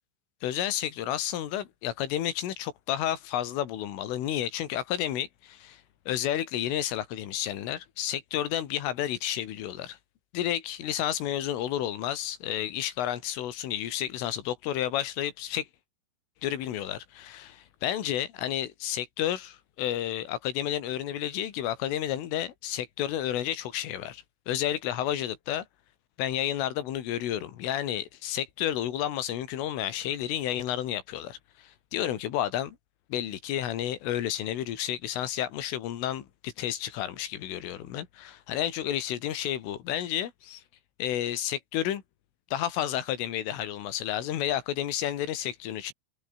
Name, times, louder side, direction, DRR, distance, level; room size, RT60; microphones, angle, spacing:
voice 1, 0.4-10.0 10.3-15.7 16.4-25.7 26.2-32.8 33.1-40.6 41.0-42.0 42.5-45.9, left 11 dB, 90° left, 4.9 m, -31 dB
omnidirectional pair, 5.6 m